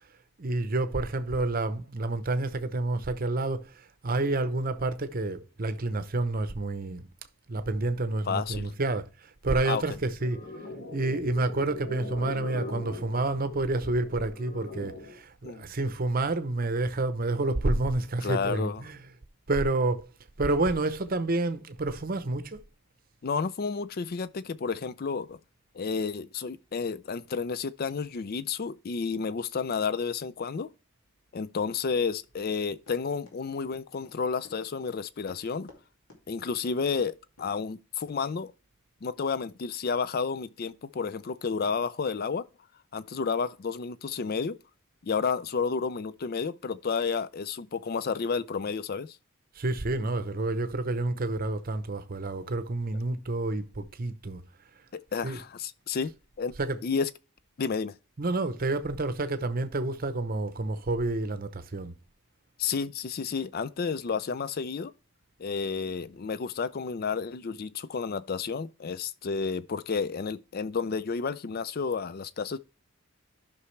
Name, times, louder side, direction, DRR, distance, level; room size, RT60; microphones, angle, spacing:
voice 1, 0.4-7.0 7.5-10.4 10.9-19.0 19.5-20.1 20.4-22.6 49.6-54.4 55.2-55.4 56.6-56.8 58.2-61.9, right 2 dB, 40° right, 0.7 m, -29 dB
voice 2, 8.3-8.7 9.7-9.8 15.4-15.7 18.2-18.8 23.2-25.4 25.7-30.7 31.3-35.7 36.3-38.5 39.0-42.4 42.9-44.6 45.0-49.2 54.9-56.5 56.8-57.1 57.6-58.0 62.6-64.9 65.4-72.6, left 5 dB, 45° left, 0.4 m, -31 dB
sound 1, 10.2-15.2, left 2 dB, 60° left, 2.3 m, -41 dB
Run, 32.8-35.8 36.1-36.3 36.6-36.9 37.4-37.5 38.1-38.2, left 2 dB, 80° left, 2.4 m, -54 dB
11.5 x 5.9 x 3.2 m
head